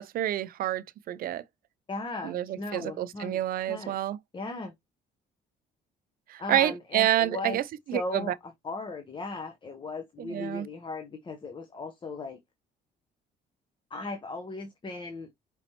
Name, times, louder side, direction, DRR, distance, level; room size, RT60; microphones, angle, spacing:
voice 1, 0.0-1.4 2.2-4.2 6.3-7.6 7.9-8.3 10.2-10.7, right 12 dB, 60° right, 0.6 m, -28 dB
voice 2, 1.9-3.4 3.7-4.0 4.3-4.7 6.4-7.6 7.9-12.4 13.9-15.3, left 3 dB, 30° left, 1.0 m, -37 dB
5.1 x 3.1 x 3.0 m
cardioid pair, 110°, 17 cm